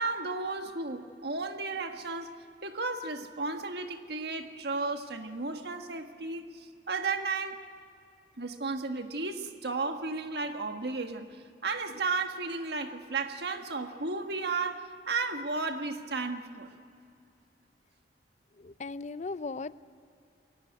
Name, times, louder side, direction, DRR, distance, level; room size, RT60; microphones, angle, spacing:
voice 1, 0.0-2.4 2.6-7.6 8.4-16.7, right 3 dB, 65° right, 6 dB, 1.6 m, -34 dB
voice 2, 18.6-19.9, left 3 dB, 40° left, 15 dB, 0.5 m, -38 dB
23.0 x 17.5 x 9.4 m, 2.5 s
head